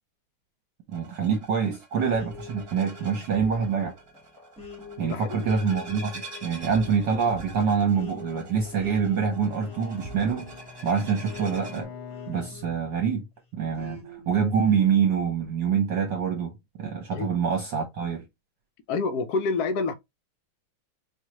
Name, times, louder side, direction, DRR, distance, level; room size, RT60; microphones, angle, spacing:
sound 1, 0.9-11.8, right 3 dB, 35° right, 1.3 m, -47 dB
voice 1, 0.9-3.9 5.0-10.5 10.8-11.8 12.3-13.3 13.5-18.2, right 6 dB, 60° right, 1.4 m, -26 dB
sound 2, 2.1-13.1 13.8-15.3, left 2 dB, 5° left, 0.6 m, -45 dB
voice 2, 5.0-5.4 17.1-17.3 18.9-19.9, left 4 dB, 85° left, 0.8 m, -27 dB
Bowed string instrument, 9.0-13.3, left 6 dB, 55° left, 1.0 m, -44 dB
4.6 x 2.4 x 3.0 m
omnidirectional pair, 2.4 m